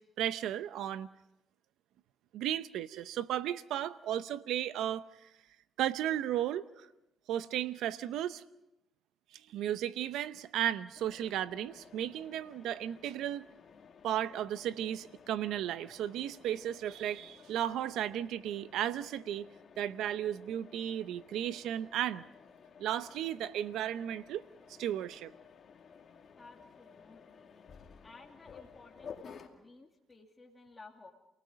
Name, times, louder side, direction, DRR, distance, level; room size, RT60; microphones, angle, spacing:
voice 1, 0.2-1.1 2.3-5.1 5.8-6.6 7.3-8.4 9.3-13.5 14.0-19.5 19.8-22.2 22.8-24.4 24.8-25.3, right 11 dB, 85° right, 14 dB, 0.7 m, -34 dB
Mechanisms, 11.0-29.5, left 6 dB, 50° left, 2.4 m, -55 dB
voice 2, 26.4-27.7 28.0-31.1, left 3 dB, 20° left, 0 dB, 2.7 m, -56 dB
28.5 x 19.0 x 5.2 m, 0.91 s
cardioid pair, 90°, 0 cm